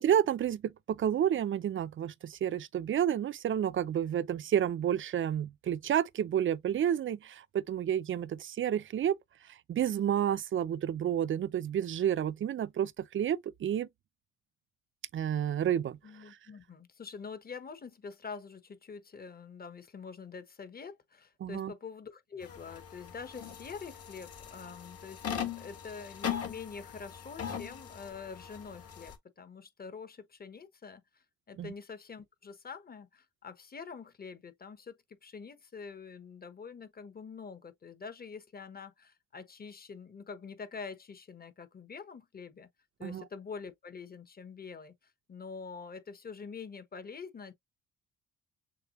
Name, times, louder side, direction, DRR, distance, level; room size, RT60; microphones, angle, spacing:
voice 1, 0.0-9.2 9.5-13.9 15.1-16.0 16.3-16.4 21.4-21.7 31.6-31.7 43.0-43.2, right 10 dB, 40° right, 0.5 m, -30 dB
voice 2, 16.0-42.7 43.0-47.5, left 5 dB, 30° left, 1.0 m, -46 dB
sound 1, 22.4-29.1, left 8 dB, 50° left, 1.8 m, -40 dB
6.8 x 2.3 x 3.0 m
cardioid pair, 90°, 30 cm